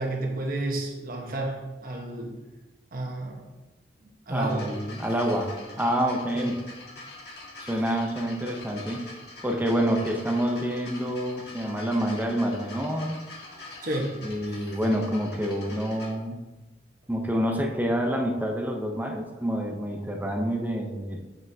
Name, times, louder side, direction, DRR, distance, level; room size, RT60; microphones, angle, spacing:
voice 1, 0.0-2.4 2.9-3.5 4.3-4.7 6.3-6.5 13.8-14.2, right 2 dB, 55° right, 0 dB, 1.2 m, -31 dB
voice 2, 4.3-6.5 7.7-9.0 9.4-13.2 14.2-16.4 17.1-21.2, equal, 10° right, 1 dB, 0.7 m, -27 dB
sound 1, 4.4-16.1 17.0-17.1, left 2 dB, 70° left, 1.7 m, -44 dB
7.4 x 5.6 x 2.8 m, 1.1 s
head